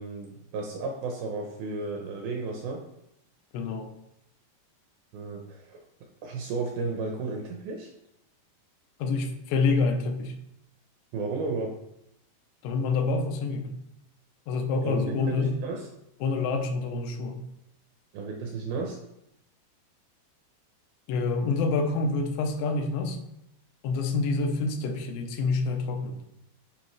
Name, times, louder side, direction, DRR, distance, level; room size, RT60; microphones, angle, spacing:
voice 1, 0.0-2.8 5.1-5.8 6.2-7.9 11.1-11.7 14.8-15.9 18.1-19.0, right 3 dB, 75° right, 1 dB, 2.3 m, -33 dB
voice 2, 3.5-3.9 9.0-10.3 12.6-13.8 14.5-15.5 16.2-17.4 21.1-23.2 23.8-26.2, left 4 dB, 85° left, 4 dB, 3.0 m, -27 dB
10.0 x 5.2 x 3.1 m, 0.81 s
omnidirectional pair, 5.0 m